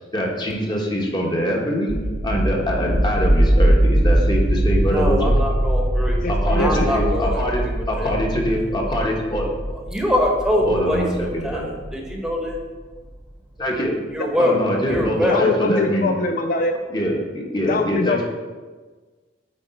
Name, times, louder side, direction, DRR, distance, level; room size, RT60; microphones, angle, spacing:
voice 1, 0.1-1.9 2.2-5.3 6.3-9.8 10.6-11.7 13.6-14.0 14.4-16.1 16.9-18.2, equal, 25° left, -1 dB, 1.3 m, -24 dB
sound 1, 1.9-12.6, right 1 dB, 25° right, 0.6 m, -21 dB
voice 2, 4.8-6.2 6.6-8.1 9.9-12.6 14.1-14.5 14.9-15.4, left 1 dB, 5° right, 0 dB, 1.1 m, -24 dB
voice 3, 6.2-6.9 15.3-16.8 17.7-18.2, left 3 dB, 50° left, 5 dB, 0.4 m, -23 dB
8.7 x 4.4 x 4.4 m, 1.4 s
head